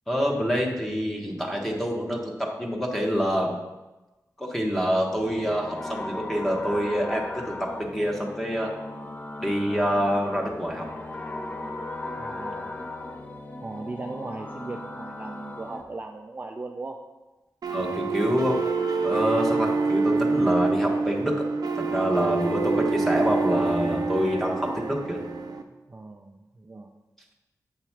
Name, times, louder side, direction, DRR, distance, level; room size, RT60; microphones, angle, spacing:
voice 1, 0.1-3.6 4.4-8.7 9.4-10.9 17.7-18.6 19.0-21.4 21.7-25.2, equal, 5° left, -1 dB, 1.1 m, -26 dB
sound 1, 5.2-15.8, left 2 dB, 25° left, 0.5 m, -37 dB
voice 2, 12.2-12.8 13.6-17.0 25.9-26.9, right 3 dB, 25° right, 2 dB, 0.4 m, -38 dB
sound 2, 17.6-25.6, right 4 dB, 75° right, 0.5 m, -26 dB
7.9 x 3.0 x 5.8 m, 1.1 s
wide cardioid pair, 135°, 7 cm